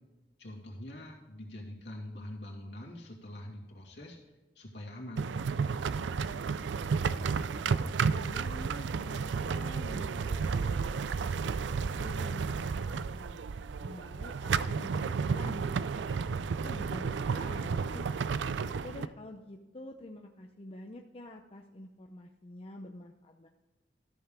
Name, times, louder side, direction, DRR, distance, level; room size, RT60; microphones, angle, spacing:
voice 1, 0.4-4.2 4.6-5.3, left 1 dB, 70° left, -2 dB, 2.6 m, -44 dB
sound 1, 5.2-19.1, right 5 dB, 80° right, 0.4 m, -32 dB
voice 2, 7.1-11.7 12.0-15.9 16.6-18.1 18.8-23.5, left 1 dB, 35° left, 3 dB, 0.6 m, -48 dB
13.5 x 6.9 x 3.6 m, 1.2 s
head